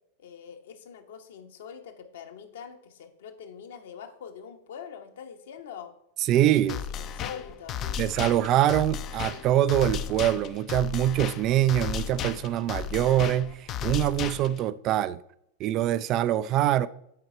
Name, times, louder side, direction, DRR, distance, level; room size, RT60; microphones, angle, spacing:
voice 1, 0.2-5.9 6.7-7.8, left 7 dB, 60° left, 1.0 m, -44 dB
voice 2, 6.3-6.7 8.0-15.2 15.6-16.9, right 12 dB, 35° right, 0.3 m, -24 dB
sound 1, 6.7-14.7, left 8 dB, 35° left, 0.5 m, -34 dB
9.0 x 4.8 x 4.4 m
figure-of-eight pair, 90°, 0 cm